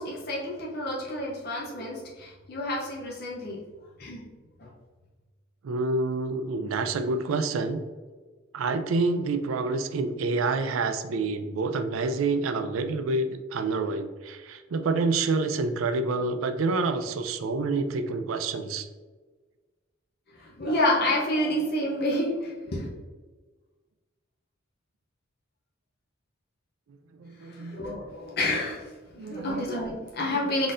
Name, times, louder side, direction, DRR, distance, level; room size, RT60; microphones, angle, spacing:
voice 1, 0.0-3.6 4.0-4.2 4.6-4.7 20.4-22.9 27.4-28.9 29.1-30.7, left 1 dB, 50° left, -3 dB, 0.7 m, -29 dB
voice 2, 5.6-7.8 8.5-18.9 27.2-27.8 29.2-29.7, right 3 dB, 90° right, 8 dB, 0.4 m, -28 dB
4.1 x 3.8 x 2.5 m, 1.3 s
head